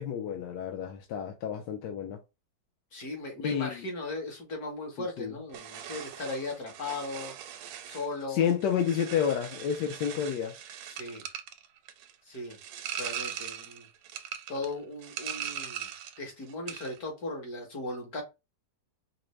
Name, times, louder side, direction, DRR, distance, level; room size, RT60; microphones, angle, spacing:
voice 1, 0.0-2.2 3.4-3.8 5.2-5.3 8.3-10.6, left 8 dB, 75° left, 1.1 m, -30 dB
voice 2, 2.9-8.5 10.9-11.3 12.3-12.6 12.9-13.9 14.5-15.9 16.2-18.2, left 2 dB, 50° left, 1.8 m, -37 dB
sound 1, 5.5-16.2 16.5-17.0, right 9 dB, 85° right, 1.4 m, -40 dB
5.0 x 2.1 x 3.1 m
omnidirectional pair, 2.2 m